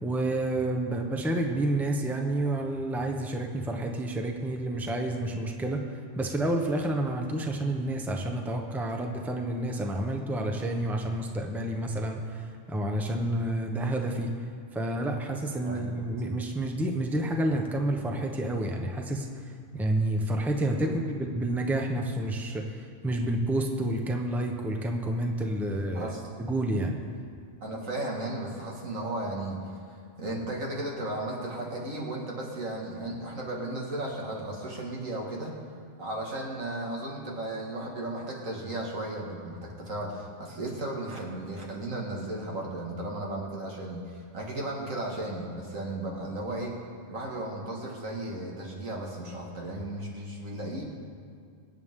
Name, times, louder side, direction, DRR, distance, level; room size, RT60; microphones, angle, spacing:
voice 1, 0.0-5.8 6.1-14.3 14.7-26.1 26.4-27.0, right 1 dB, ahead, 2 dB, 0.8 m, -29 dB
voice 2, 27.6-29.6 29.9-35.5 36.0-46.7 47.1-50.8, right 1 dB, 85° right, -2 dB, 2.3 m, -35 dB
24.5 x 8.2 x 3.7 m, 2.3 s
omnidirectional pair, 1.4 m